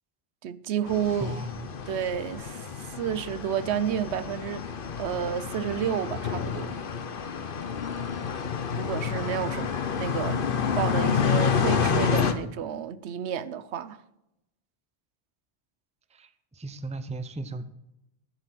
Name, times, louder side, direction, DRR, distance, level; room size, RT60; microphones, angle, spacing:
voice 1, 0.4-1.3 1.9-2.7 3.0-4.7 5.0-6.8 8.8-10.4 10.8-14.0, right 9 dB, 85° right, 0.9 m, -30 dB
sound 1, 0.9-12.3, left 6 dB, 55° left, 1.0 m, -29 dB
voice 2, 1.2-1.7 9.5-9.8 16.1-17.7, right 2 dB, 10° right, 0.5 m, -37 dB
10.0 x 8.2 x 5.9 m
omnidirectional pair, 1.1 m